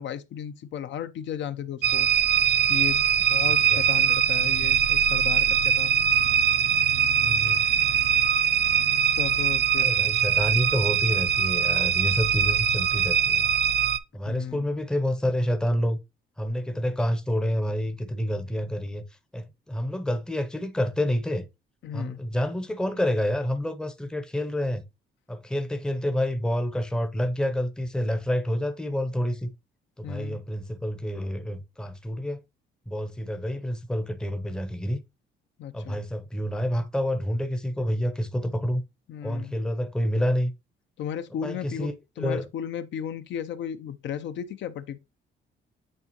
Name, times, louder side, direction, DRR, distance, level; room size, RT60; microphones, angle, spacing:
voice 1, 0.0-2.1 2.7-5.9 9.2-10.0 14.2-14.7 21.8-22.2 30.0-30.4 35.6-36.0 39.1-39.5 41.0-45.0, left 9 dB, 65° left, 0.6 m, -35 dB
sound 1, 1.8-14.0, right 8 dB, 55° right, 0.5 m, -22 dB
voice 2, 3.5-3.8 7.2-7.7 9.8-13.5 14.1-16.0 16.4-19.0 19.3-21.4 21.9-24.8 25.3-29.5 30.0-32.4 32.9-35.0 35.7-38.8 39.2-40.5 41.4-42.5, equal, 5° left, 0.6 m, -28 dB
8.6 x 3.7 x 2.9 m
cardioid pair, 135°, 21 cm